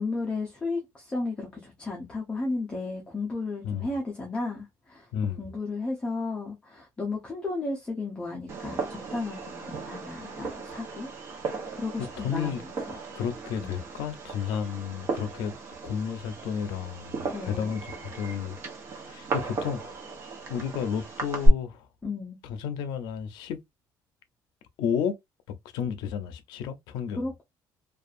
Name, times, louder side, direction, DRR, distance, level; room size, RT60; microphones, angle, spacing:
voice 1, 0.0-5.1 5.4-11.1 11.4-13.0 13.6-13.8 17.3-17.8 22.0-22.4 27.2-27.4, left 3 dB, 15° left, 0.6 m, -34 dB
voice 2, 5.1-5.5 12.0-12.6 13.1-15.5 15.8-18.6 19.0-19.9 20.5-21.9 22.4-23.6 24.8-25.1 25.7-27.2, left 7 dB, 90° left, 0.5 m, -32 dB
Fireworks, 8.5-21.5, right 2 dB, 35° right, 0.8 m, -34 dB
2.6 x 2.3 x 2.4 m
cardioid pair, 175°, 7 cm